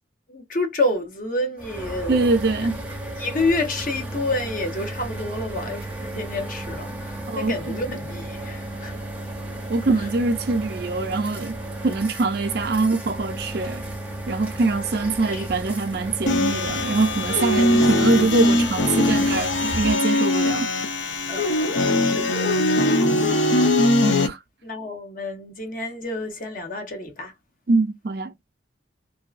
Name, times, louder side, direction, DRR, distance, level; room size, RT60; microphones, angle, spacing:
voice 1, 0.3-2.2 3.2-9.0 10.0-10.1 14.5-14.6 15.3-15.5 17.6-17.8 21.3-23.6 24.6-27.3, left 2 dB, 45° left, 0.8 m, -29 dB
sound 1, 1.6-19.9, right 1 dB, 10° right, 0.6 m, -34 dB
voice 2, 2.1-2.7 7.3-7.5 9.7-11.5 11.8-13.8 14.3-20.7 24.2-24.4 27.7-28.3, right 3 dB, 55° right, 0.5 m, -23 dB
sound 2, 16.3-24.3, left 1 dB, 75° left, 0.7 m, -21 dB
2.6 x 2.4 x 2.4 m
head